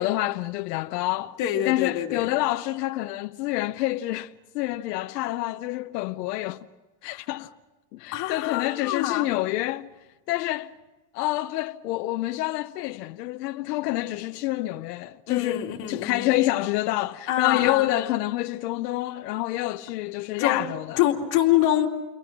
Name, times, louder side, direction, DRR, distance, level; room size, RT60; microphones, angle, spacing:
voice 1, 0.0-1.4 1.7-6.7 7.0-7.5 7.9-9.9 10.3-10.7 11.1-21.0, left 16 dB, 75° left, 0.9 m, -27 dB
voice 2, 1.4-2.2 7.0-7.2 8.1-9.3 15.3-16.3 17.3-17.9 20.4-20.6 21.0-21.9, left 12 dB, 40° left, 2.7 m, -25 dB
29.5 x 23.0 x 6.0 m
supercardioid pair, 165°, 48 cm